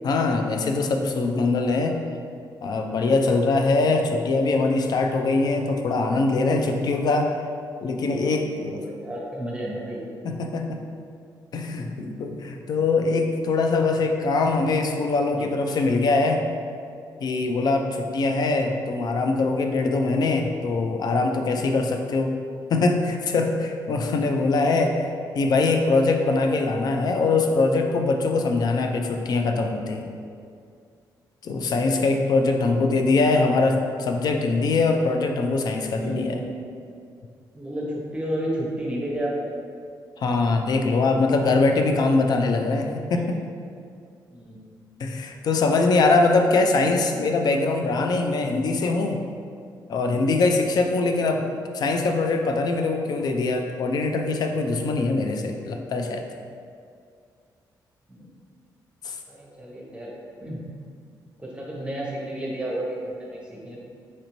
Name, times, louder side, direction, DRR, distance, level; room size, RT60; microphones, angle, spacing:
voice 1, 0.0-2.0 2.6-7.4 7.8-8.8 10.2-10.8 11.5-16.4 17.2-22.3 22.7-30.1 31.4-36.4 40.2-43.4 45.0-49.2 49.9-51.5 51.7-56.2 59.0-59.2, left 3 dB, 60° left, 4 dB, 0.4 m, -22 dB
voice 2, 8.4-10.0 15.3-15.5 31.8-32.0 32.4-33.5 35.9-36.6 37.5-39.5 43.2-43.4 44.3-44.7 49.9-50.2 58.1-58.3 59.3-60.1 60.4-60.6 61.4-63.8, right 1 dB, 15° right, -4 dB, 0.8 m, -32 dB
4.2 x 2.6 x 3.0 m, 2.3 s
cardioid pair, 95°, 8 cm